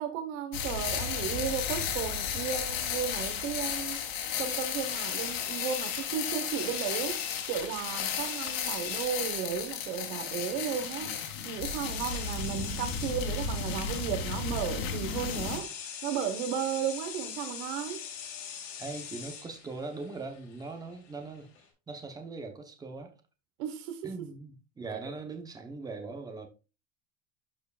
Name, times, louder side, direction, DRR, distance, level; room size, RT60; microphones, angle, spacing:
voice 1, 0.0-4.0 4.4-11.1 11.4-15.7 16.0-18.1 23.6-24.3, right 8 dB, 70° right, 1.2 m, -34 dB
sound 1, 0.5-15.6, left 7 dB, 85° left, 2.5 m, -34 dB
sound 2, 4.8-21.6, left 7 dB, 65° left, 3.1 m, -43 dB
voice 2, 18.8-23.2 24.0-26.5, right 3 dB, 10° right, 0.8 m, -41 dB
12.5 x 4.6 x 2.4 m
cardioid pair, 180°, 40 cm